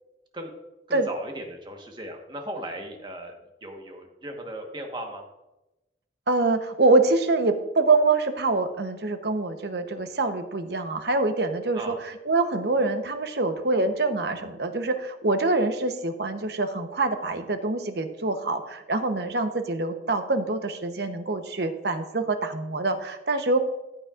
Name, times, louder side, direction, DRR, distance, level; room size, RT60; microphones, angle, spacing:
voice 1, 0.9-3.3 3.6-5.2 11.7-12.0, right 1 dB, 25° right, 3 dB, 1.3 m, -37 dB
voice 2, 6.3-11.9 12.2-23.6, right 3 dB, 65° right, 8 dB, 0.9 m, -25 dB
14.0 x 8.6 x 2.5 m, 0.98 s
head